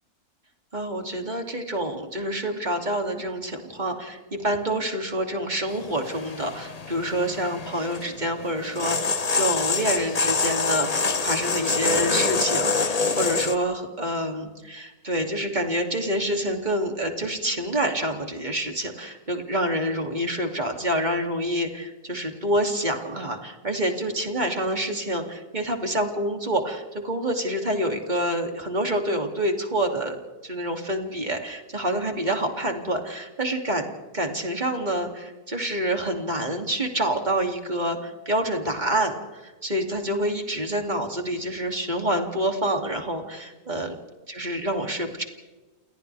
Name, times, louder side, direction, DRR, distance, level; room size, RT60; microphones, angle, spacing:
voice 1, 0.7-33.9 34.1-43.9 44.3-45.2, right 1 dB, 30° right, 3 dB, 2.8 m, -27 dB
sound 1, 5.7-13.6, left 4 dB, 30° left, 1.0 m, -26 dB
29.5 x 28.5 x 3.5 m, 1.2 s
omnidirectional pair, 1.6 m